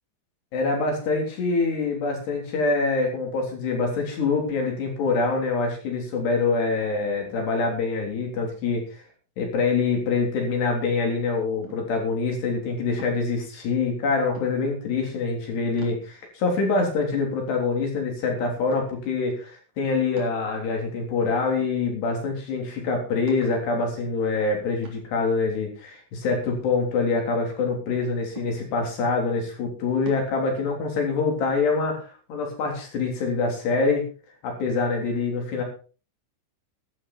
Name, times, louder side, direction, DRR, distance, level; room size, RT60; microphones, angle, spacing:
voice 1, 0.5-9.0 9.4-34.0 34.4-35.6, left 4 dB, 60° left, 2 dB, 5.4 m, -25 dB
sound 1, 11.6-12.1 13.0-13.4 14.3-14.9 15.4-15.5 15.8-16.4 17.0-17.1 17.5-18.2 18.7-19.1 20.2-20.9 21.6-22.2 22.6-22.7 23.3-23.7 24.8-25.3 26.3-27.2 28.4-28.9 30.1-30.3, right 6 dB, 40° right, 4.4 m, -46 dB
13.0 x 12.5 x 4.5 m, 0.36 s
omnidirectional pair, 5.7 m